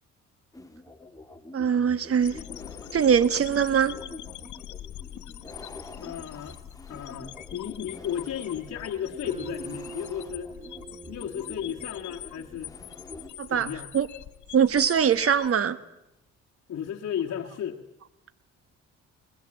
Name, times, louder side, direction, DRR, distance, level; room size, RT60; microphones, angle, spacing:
sound 1, 0.5-13.3, left 2 dB, 10° left, 2.2 m, -47 dB
voice 1, 1.5-2.4 2.9-4.0 13.4-14.1 14.5-15.8, right 7 dB, 50° right, 1.4 m, -22 dB
sound 2, 2.2-15.5, left 13 dB, 75° left, 1.1 m, -43 dB
voice 2, 6.0-6.6 6.9-10.5 11.1-12.7 13.5-13.9 16.7-17.8, left 9 dB, 60° left, 1.7 m, -34 dB
sound 3, 9.2-13.6, right 4 dB, 20° right, 2.0 m, -44 dB
22.0 x 20.5 x 8.8 m
cardioid pair, 90°, 30 cm